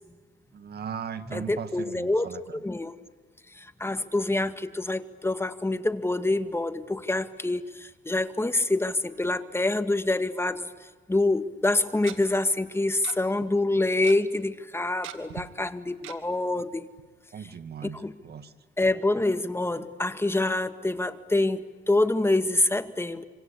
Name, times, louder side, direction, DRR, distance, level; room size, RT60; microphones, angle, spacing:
voice 1, 0.5-2.6 16.8-16.9 17.3-18.5, right 7 dB, 55° right, 11 dB, 2.0 m, -38 dB
voice 2, 1.3-3.0 3.6-10.7 11.1-16.9 18.0-18.1 18.8-23.2, left 2 dB, 10° left, 11 dB, 1.8 m, -26 dB
Tick-tock, 11.1-11.2 12.0-12.2 13.0-13.2 13.4-13.5 13.8-14.2 15.0-15.4 16.0-16.2 16.6-16.7 17.0-17.1, right 11 dB, 85° right, 2.1 m, -39 dB
26.0 x 25.5 x 8.6 m, 1.4 s
cardioid pair, 90°, 20 cm